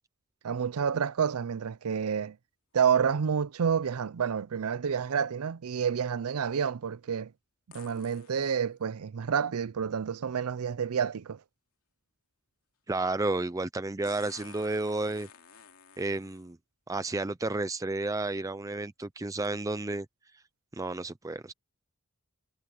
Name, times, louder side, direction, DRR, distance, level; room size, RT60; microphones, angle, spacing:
voice 1, 0.4-2.4 2.7-7.3 7.7-11.4, right 7 dB, 80° right, 0.5 m, -29 dB
sound 1, 1.3-1.4 7.7-8.6 10.6-10.7 14.0-16.5 17.5-17.6 18.2-18.5 19.4-19.5, left 7 dB, 75° left, 2.8 m, -52 dB
voice 2, 12.9-15.3 16.0-16.6 16.9-20.1 20.7-21.5, right 2 dB, 15° right, 0.5 m, -31 dB
head